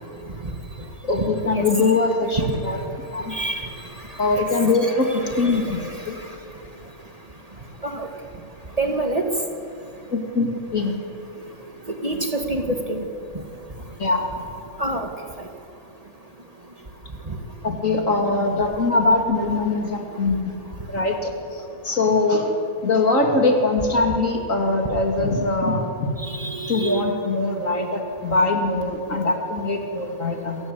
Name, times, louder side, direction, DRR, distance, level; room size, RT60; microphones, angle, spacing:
voice 1, 0.8-2.8 3.1-3.3 4.2-6.2 10.1-10.9 14.0-14.3 17.6-20.5 20.9-22.5 22.8-26.1 26.4-30.6, left 3 dB, 65° left, 2 dB, 3.1 m, -22 dB
voice 2, 3.3-3.7 4.3-4.4 4.8-5.5 7.8-8.1 8.8-9.3 11.9-13.1 14.8-15.1 26.4-27.0, right 2 dB, 25° right, 3 dB, 2.0 m, -26 dB
27.5 x 16.0 x 8.3 m, 2.5 s
omnidirectional pair, 1.5 m